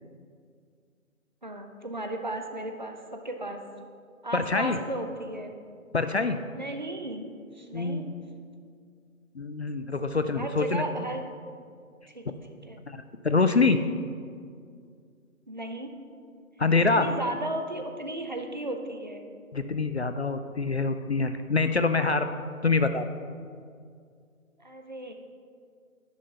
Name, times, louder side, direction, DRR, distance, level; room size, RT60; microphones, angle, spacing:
voice 1, 1.4-3.6 4.2-5.5 6.6-7.2 7.5-8.1 10.4-11.2 12.1-12.3 12.7-12.8 15.5-15.9 16.7-19.2 24.6-25.1, right 1 dB, 35° right, 4 dB, 0.6 m, -35 dB
voice 2, 4.3-4.8 5.9-6.4 7.7-8.1 9.4-10.8 12.9-13.8 16.6-17.1 19.5-22.3 22.6-23.0, left 3 dB, 50° left, 9 dB, 0.4 m, -25 dB
10.0 x 5.8 x 5.5 m, 2.2 s
figure-of-eight pair, 165°, 42 cm